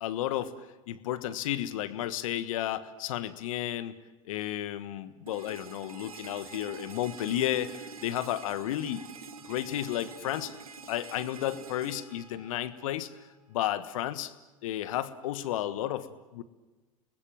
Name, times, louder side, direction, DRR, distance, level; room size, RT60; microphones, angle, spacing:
voice 1, 0.0-4.0 4.2-9.0 9.5-10.5 10.9-13.1 13.5-14.3 14.6-16.4, left 12 dB, 70° left, 13 dB, 1.5 m, -32 dB
sound 1, 5.3-13.2, right 5 dB, 90° right, 1.7 m, -46 dB
30.0 x 20.0 x 7.7 m, 1.2 s
hypercardioid pair, 80°, 18 cm